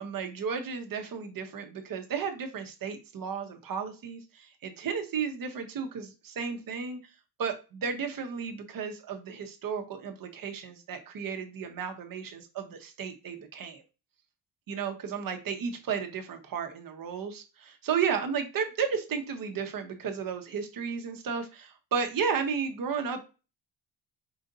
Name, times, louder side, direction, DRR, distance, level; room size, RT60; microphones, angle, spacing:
voice 1, 0.0-7.0 7.4-13.8 14.7-23.2, right 6 dB, 50° right, 6 dB, 1.0 m, -33 dB
4.9 x 2.6 x 3.9 m, 0.31 s
cardioid pair, 140°, 42 cm